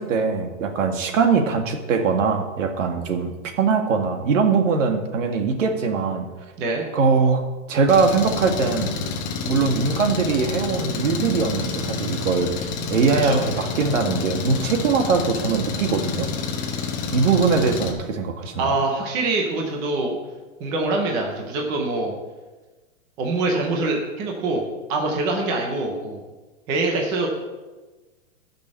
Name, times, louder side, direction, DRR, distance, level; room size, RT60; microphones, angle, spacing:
voice 1, 0.0-6.3 6.9-8.9 9.5-16.3 17.1-18.7, right 5 dB, 65° right, 5 dB, 2.0 m, -21 dB
Engine, 7.9-17.9, left 5 dB, 20° left, 1.1 m, -29 dB
voice 2, 18.6-20.2 20.6-22.1 23.2-24.6 24.9-26.2 26.7-27.3, right 2 dB, 10° right, 1 dB, 0.5 m, -24 dB
12.0 x 6.2 x 7.5 m, 1.2 s
supercardioid pair, 170°, 40 cm